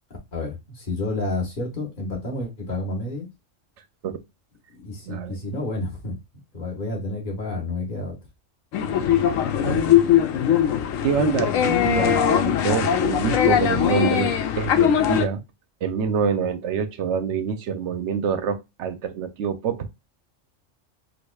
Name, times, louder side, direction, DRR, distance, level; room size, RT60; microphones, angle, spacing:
voice 1, 0.3-3.3 4.7-6.2 6.5-8.1, left 2 dB, 40° left, 1.5 m, -30 dB
voice 2, 5.1-5.4 9.6-9.9 11.0-15.4 15.8-20.1, right 7 dB, 70° right, 0.8 m, -26 dB
sound 1, 8.7-15.3, left 9 dB, 85° left, 1.0 m, -20 dB
4.7 x 2.4 x 2.2 m
omnidirectional pair, 1.3 m